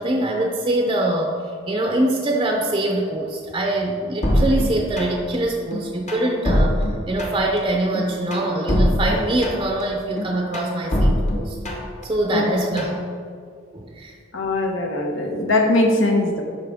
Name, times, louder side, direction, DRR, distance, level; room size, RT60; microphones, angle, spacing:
voice 1, 0.0-1.4 1.7-11.6 12.0-13.1 13.7-14.1, right 1 dB, 25° right, 1 dB, 0.5 m, -23 dB
sound 1, 4.2-5.4 5.7-7.6 7.9-9.8 10.2-12.0 12.4-13.0, equal, 35° left, 1.0 m, -22 dB
voice 2, 14.3-16.4, left 2 dB, 80° left, 2 dB, 1.0 m, -20 dB
11.5 x 4.0 x 3.5 m, 2.2 s
head